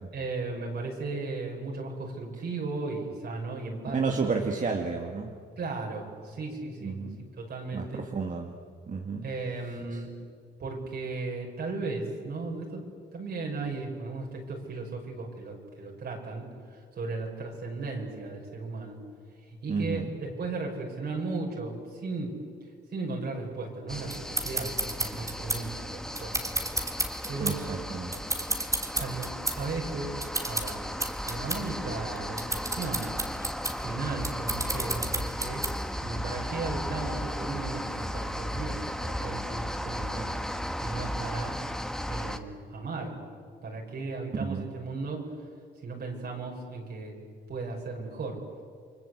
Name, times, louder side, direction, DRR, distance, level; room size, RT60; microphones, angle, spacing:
voice 1, 0.1-4.0 4.3-4.4 5.6-7.0 7.4-8.0 9.2-10.1 10.6-12.9 13.1-16.5 16.7-19.0 19.6-22.3 22.9-26.5 27.3-27.6 29.0-30.2 30.4-33.1 33.8-35.6 36.0-40.3 40.8-41.5 42.1-43.2 43.6-45.3 45.8-47.2 47.5-48.4, right 3 dB, 55° right, -1 dB, 6.0 m, -36 dB
voice 2, 3.9-5.3 6.8-7.2 7.7-8.5 8.9-9.3 9.6-10.0 19.7-20.1 27.4-28.1 44.3-44.7, right 4 dB, 40° right, 3 dB, 2.0 m, -32 dB
sound 1, 23.9-42.4, equal, 5° left, 1.6 m, -35 dB
sound 2, 24.1-36.0, right 2 dB, 15° right, 3.0 m, -33 dB
29.5 x 23.0 x 8.1 m, 2.1 s
cardioid pair, 90°, 20 cm